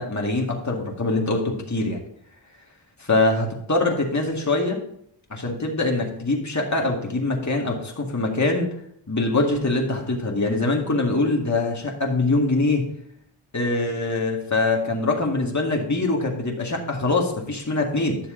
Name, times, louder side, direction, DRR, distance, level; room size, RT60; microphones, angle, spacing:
voice 1, 0.0-2.0 3.1-4.8 5.3-8.7 9.1-12.9 13.5-18.2, left 2 dB, 35° left, 0 dB, 2.0 m, -23 dB
10.5 x 6.8 x 3.9 m, 0.69 s
wide cardioid pair, 60°, 47 cm